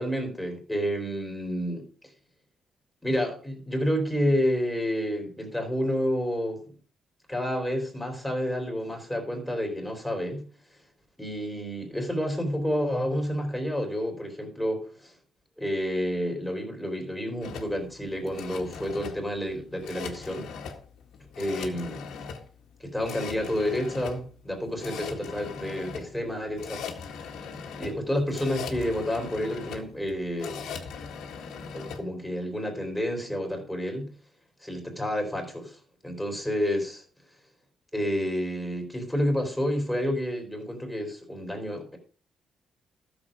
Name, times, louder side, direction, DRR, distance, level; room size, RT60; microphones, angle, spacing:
voice 1, 0.0-1.8 3.0-6.6 7.3-10.4 11.2-15.1 15.6-20.5 21.4-22.0 22.8-26.8 27.8-30.8 31.7-34.1 34.6-37.0 37.9-42.0, equal, 5° left, 3.2 m, -29 dB
sound 1, 17.4-32.0, left 6 dB, 90° left, 1.9 m, -40 dB
13.0 x 7.2 x 5.0 m
cardioid pair, 115°, 0 cm